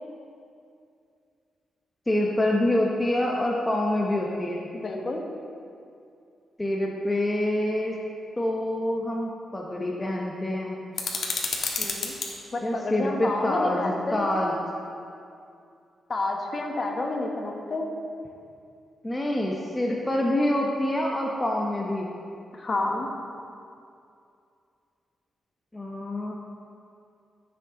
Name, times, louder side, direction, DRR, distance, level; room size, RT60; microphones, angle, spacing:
voice 1, 2.1-4.7 6.6-8.0 8.4-10.8 12.6-14.6 19.0-22.1 25.7-26.3, left 1 dB, 15° left, -2 dB, 0.8 m, -26 dB
voice 2, 4.7-5.2 11.8-12.2 12.5-14.5 16.1-17.9 22.5-23.1, left 2 dB, 40° left, 1 dB, 1.2 m, -29 dB
sound 1, 10.9-12.3, left 4 dB, 60° left, 1.4 m, -29 dB
13.5 x 6.9 x 3.8 m, 2.5 s
cardioid pair, 110°, 0 cm